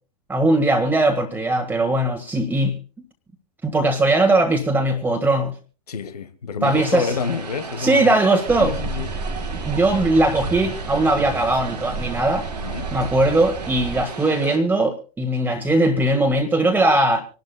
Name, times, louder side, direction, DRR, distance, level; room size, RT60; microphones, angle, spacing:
voice 1, 0.3-2.7 3.6-5.5 6.6-7.1 7.8-8.7 9.6-12.5 12.9-17.2, right 2 dB, 10° right, 1.6 m, -19 dB
voice 2, 5.9-8.2 8.6-9.3 12.5-12.9, left 5 dB, 70° left, 1.3 m, -28 dB
Vehicle, 6.6-14.6, right 4 dB, 75° right, 2.3 m, -35 dB
sound 1, 8.5-14.0, right 4 dB, 30° right, 0.8 m, -32 dB
26.0 x 12.0 x 2.2 m
figure-of-eight pair, 90°, 21 cm